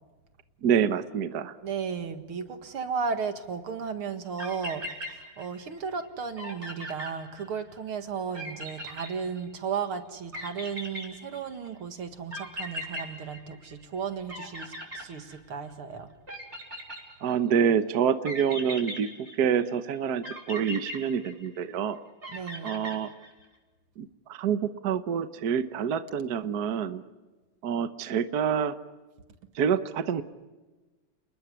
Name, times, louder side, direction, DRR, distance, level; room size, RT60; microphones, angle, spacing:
voice 1, 0.6-1.6 17.2-22.0 22.6-23.1 24.0-27.0 27.6-28.7 29.5-30.2, right 7 dB, 55° right, 10 dB, 1.4 m, -27 dB
voice 2, 1.6-16.1 22.3-22.7, right 6 dB, 80° right, 7 dB, 2.7 m, -34 dB
sound 1, 4.1-4.2 4.4-5.7 6.0-6.1 6.4-7.8 8.3-9.8 10.3-11.7 12.3-14.0 14.3-15.7 16.3-17.5 18.3-19.7 20.2-21.8 22.2-23.4, equal, 30° right, 6.1 m, -39 dB
29.5 x 20.5 x 9.8 m, 1.2 s
omnidirectional pair, 2.3 m